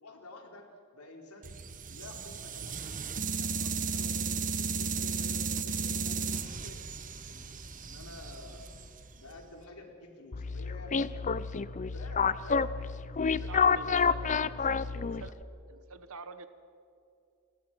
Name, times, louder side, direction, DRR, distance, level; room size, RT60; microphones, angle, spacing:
voice 1, 0.0-1.6 1.9-2.8 3.3-6.8 7.3-8.6 9.1-11.4 11.9-15.3, left 2 dB, 85° left, 2 dB, 4.0 m, -50 dB
sound 1, 1.4-9.5, right 5 dB, 35° right, 1.2 m, -35 dB
sound 2, 10.3-15.4, left 5 dB, 35° left, 0.6 m, -29 dB
voice 2, 13.2-14.3 14.9-15.4 15.7-16.5, right 4 dB, 65° right, 10 dB, 1.2 m, -47 dB
29.5 x 20.5 x 6.1 m, 2.5 s
head